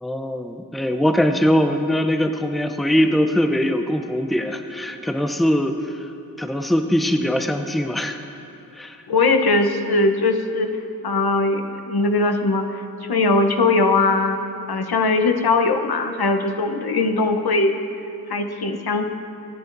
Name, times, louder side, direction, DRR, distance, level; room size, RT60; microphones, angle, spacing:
voice 1, 0.0-6.1 6.4-8.2 8.7-9.0, equal, ahead, 6 dB, 0.6 m, -21 dB
voice 2, 9.1-10.7 11.0-12.8 13.1-14.4 14.7-17.8 18.3-19.1, left 3 dB, 75° left, 5 dB, 0.9 m, -20 dB
26.5 x 9.4 x 2.6 m, 2.6 s
wide cardioid pair, 85°, 38 cm